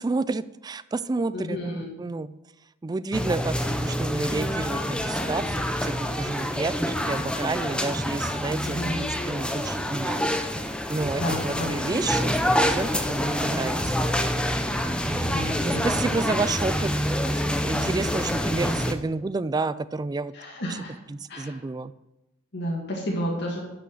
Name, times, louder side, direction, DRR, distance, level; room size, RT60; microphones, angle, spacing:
voice 1, 0.0-2.3 2.8-10.2 10.9-13.8 15.0-16.9 17.6-20.3 20.7-20.8 21.1-21.9, right 3 dB, 20° right, 15 dB, 0.3 m, -30 dB
voice 2, 1.3-1.9 8.7-9.1 11.2-11.7 15.2-15.8 20.3-20.9 21.3-21.6 22.5-23.6, equal, 55° left, -2 dB, 2.0 m, -31 dB
sound 1, 3.1-18.9, equal, 5° left, 0.7 m, -27 dB
12.5 x 6.1 x 6.2 m, 0.95 s
head